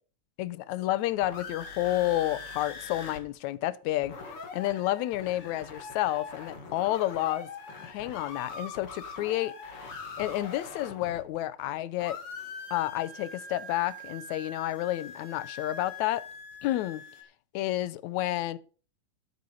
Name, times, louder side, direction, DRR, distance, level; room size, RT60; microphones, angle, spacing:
voice 1, 0.4-4.2 4.5-7.5 7.8-9.5 10.2-12.2 12.7-16.3 16.6-17.0 17.5-18.6, left 15 dB, 75° left, 1.9 m, -30 dB
sound 1, 1.0-3.2 3.5-3.6 3.8-11.7 12.0-17.2, left 4 dB, 45° left, 3.0 m, -43 dB
13.0 x 8.3 x 5.4 m
omnidirectional pair, 3.8 m